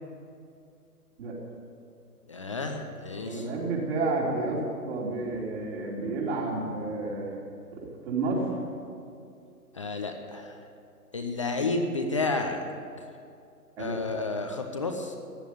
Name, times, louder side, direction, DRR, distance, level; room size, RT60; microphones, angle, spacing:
voice 1, 2.3-3.5 9.8-10.6 11.1-12.6 13.8-15.2, left 3 dB, 20° left, 4 dB, 0.6 m, -31 dB
voice 2, 3.3-7.3 7.7-8.5 13.8-14.0, right 3 dB, 40° right, -4 dB, 3.6 m, -30 dB
15.0 x 10.0 x 9.2 m, 2.4 s
hypercardioid pair, 145°, 47 cm